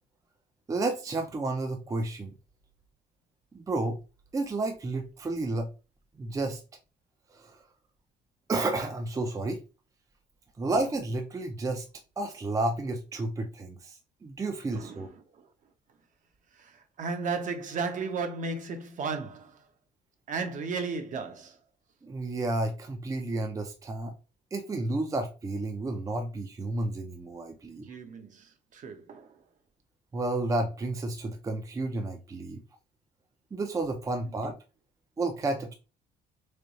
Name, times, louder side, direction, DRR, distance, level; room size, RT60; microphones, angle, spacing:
voice 1, 0.7-2.3 3.5-4.0 4.3-5.7 6.2-6.6 7.3-7.6 8.5-9.6 10.6-11.9 12.2-15.1 22.0-24.1 24.5-28.0 30.1-32.6 33.5-34.6 35.2-35.7, right 2 dB, 20° right, 0.5 m, -31 dB
voice 2, 14.7-15.5 16.5-19.7 20.3-21.6 27.8-29.4 34.3-34.5, right 4 dB, 50° right, 0.8 m, -35 dB
3.3 x 2.3 x 4.0 m
cardioid pair, 110°, 17 cm